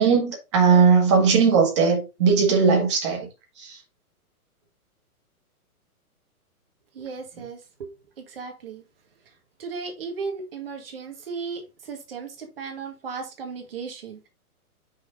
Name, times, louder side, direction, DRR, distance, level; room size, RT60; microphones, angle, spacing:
voice 1, 0.0-3.3 3.6-3.7, right 5 dB, 20° right, 1.5 m, -19 dB
voice 2, 6.9-7.9 8.2-8.8 9.6-14.3, right 5 dB, 40° right, 1.7 m, -36 dB
5.8 x 4.9 x 3.7 m
hypercardioid pair, 180°, 45 cm